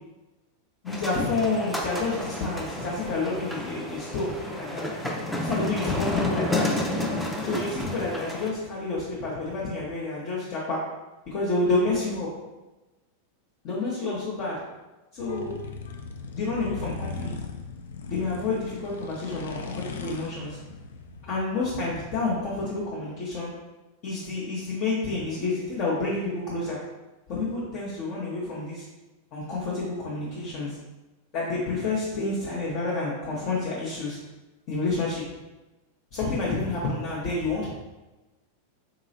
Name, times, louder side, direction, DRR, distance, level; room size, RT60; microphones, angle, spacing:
voice 1, 0.8-4.9 5.4-6.7 7.4-10.8 11.3-12.3 13.6-14.6 15.1-15.6 16.3-17.3 18.1-20.6 21.3-23.5 24.0-26.8 27.3-28.8 29.3-30.8 31.3-34.2 34.7-35.2 36.1-37.7, left 3 dB, 40° left, -6 dB, 0.7 m, -29 dB
sound 1, 0.9-8.5, left 1 dB, ahead, 0.5 m, -31 dB
sound 2, 15.2-21.5, left 4 dB, 60° left, 0.3 m, -38 dB
3.9 x 2.9 x 2.7 m, 1.1 s
figure-of-eight pair, 90°, 0 cm